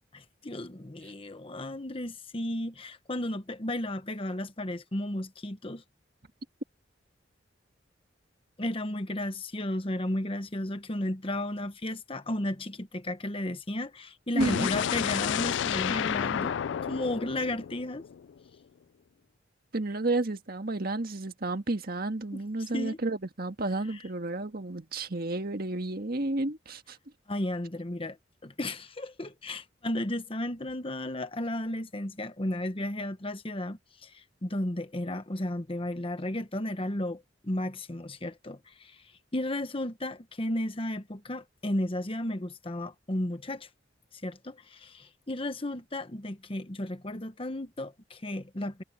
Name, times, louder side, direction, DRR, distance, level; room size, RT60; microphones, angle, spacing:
voice 1, 0.1-5.8 8.6-18.0 22.3-22.4 22.7-23.0 27.3-28.2 28.4-39.0 39.3-43.7 44.1-48.8, left 1 dB, 30° left, 1.2 m, -34 dB
voice 2, 14.3-14.7 19.7-27.0, right 2 dB, 50° right, 1.7 m, -31 dB
sound 1, 14.4-18.4, left 8 dB, 70° left, 0.3 m, -31 dB
head